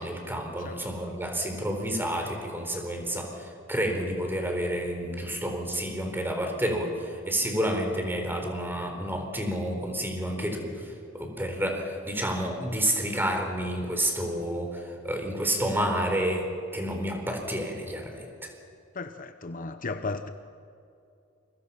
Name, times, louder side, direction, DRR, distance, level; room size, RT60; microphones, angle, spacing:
voice 1, 0.0-16.5 16.7-18.5, right 1 dB, 10° right, 4.3 m, -30 dB
voice 2, 0.6-1.0 18.9-20.3, left 3 dB, 40° left, 0.8 m, -35 dB
29.0 x 23.0 x 5.8 m
head